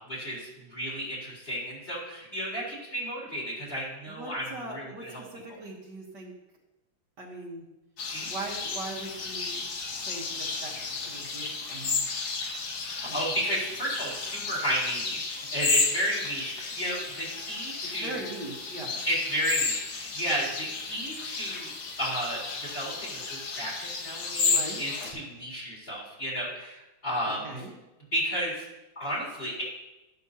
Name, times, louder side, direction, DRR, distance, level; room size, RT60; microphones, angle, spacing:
voice 1, 0.1-5.2 8.1-8.3 12.9-18.1 19.0-21.7 22.0-27.5 28.1-28.6 29.0-29.6, equal, 30° left, -6 dB, 4.2 m, -33 dB
voice 2, 4.1-6.3 7.2-7.7 8.3-9.7 9.9-12.1 13.1-13.2 17.8-19.0 24.5-24.8 27.2-27.7, right 2 dB, 60° right, -2 dB, 2.0 m, -40 dB
sound 1, 8.0-25.1, left 4 dB, 75° left, 2.2 m, -32 dB
12.0 x 11.5 x 2.9 m, 1.0 s
omnidirectional pair, 2.2 m